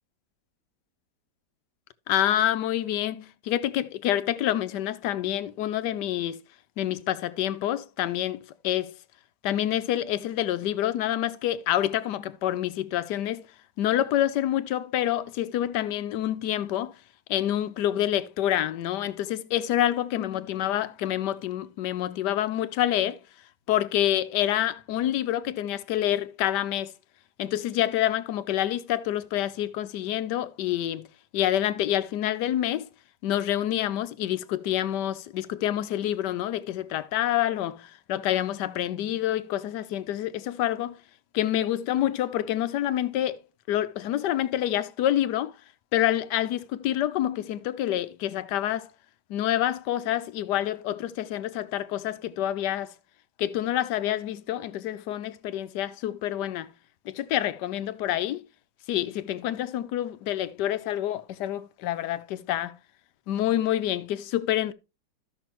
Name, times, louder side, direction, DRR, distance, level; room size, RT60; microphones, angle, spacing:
voice 1, 2.1-6.4 6.8-8.9 9.4-13.4 13.8-16.9 17.3-23.2 23.7-26.9 27.4-31.1 31.3-32.9 33.2-41.0 41.3-43.4 43.7-45.5 45.9-48.9 49.3-52.9 53.4-56.7 57.1-58.4 58.9-62.7 63.3-64.7, left 12 dB, 75° left, 1.2 m, -27 dB
14.0 x 5.9 x 3.0 m
omnidirectional pair, 1.9 m